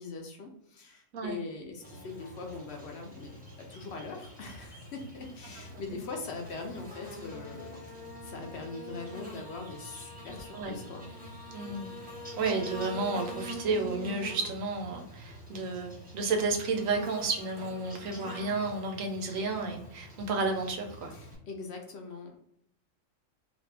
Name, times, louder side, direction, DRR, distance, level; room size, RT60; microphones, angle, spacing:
voice 1, 0.0-11.1 21.1-22.4, left 4 dB, 65° left, 2 dB, 0.8 m, -42 dB
Buzz, 1.8-21.3, equal, 10° right, 0.8 m, -45 dB
voice 2, 11.5-12.0 12.4-21.1, right 3 dB, 85° right, 3 dB, 1.1 m, -32 dB
2.6 x 2.5 x 3.2 m, 0.73 s
omnidirectional pair, 1.4 m